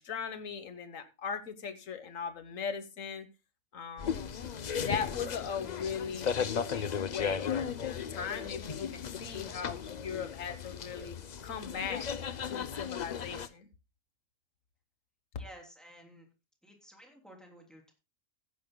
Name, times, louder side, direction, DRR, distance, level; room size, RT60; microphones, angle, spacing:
voice 1, 0.0-3.3 3.7-4.3 4.8-11.2 11.4-12.1 12.4-13.7, left 6 dB, 80° left, 1.6 m, -39 dB
sound 1, 4.0-13.5, left 7 dB, 45° left, 0.6 m, -36 dB
voice 2, 15.4-16.3 16.6-17.9, equal, ahead, 3.3 m, -53 dB
16.0 x 10.0 x 2.2 m
omnidirectional pair, 1.3 m